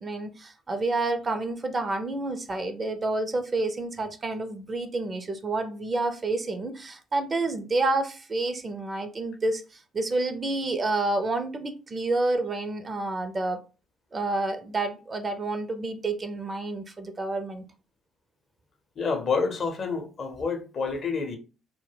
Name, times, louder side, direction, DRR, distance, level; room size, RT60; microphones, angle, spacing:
voice 1, 0.0-13.6 14.1-17.6, right 2 dB, 35° right, 0.4 m, -29 dB
voice 2, 19.0-21.4, left 4 dB, 50° left, 0.6 m, -28 dB
2.1 x 2.1 x 3.2 m
hypercardioid pair, 50°, 0 cm